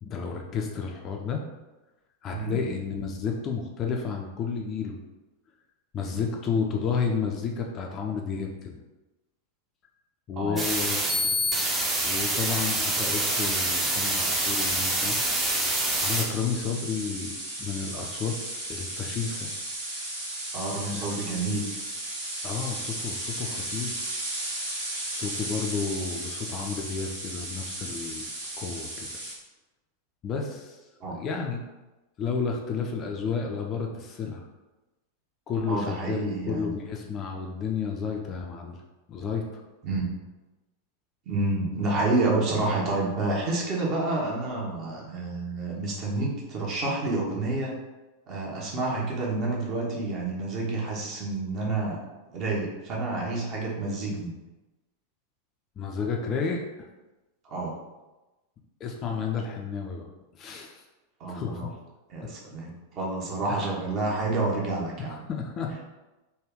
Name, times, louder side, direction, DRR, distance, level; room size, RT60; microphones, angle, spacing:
voice 1, 0.0-1.4 2.2-5.0 5.9-8.8 10.3-11.3 12.0-15.2 16.0-17.3 17.6-18.4 18.7-19.5 20.9-21.1 22.4-24.0 25.1-28.2 28.6-29.1 30.2-30.8 31.1-31.6 32.2-34.4 35.5-38.8 39.1-39.6 55.8-56.9 58.8-60.0 60.3-60.8 61.3-61.7 62.2-62.3 63.5-63.7 65.0-65.8, left 5 dB, 30° left, 1 dB, 0.4 m, -31 dB
voice 2, 2.3-2.7 6.1-6.2 10.4-10.6 20.5-21.8 31.0-31.2 35.7-36.7 39.8-40.1 41.3-47.8 48.3-52.0 52.3-54.3 57.4-57.8 61.2-61.7 62.1-65.2, right 2 dB, 35° right, -3 dB, 0.9 m, -29 dB
sound 1, 10.6-16.2, right 1 dB, 15° right, 0.6 m, -26 dB
sound 2, 12.6-29.3, right 1 dB, 65° right, 1.3 m, -35 dB
3.2 x 2.3 x 3.5 m, 1.1 s
figure-of-eight pair, 90°, 0 cm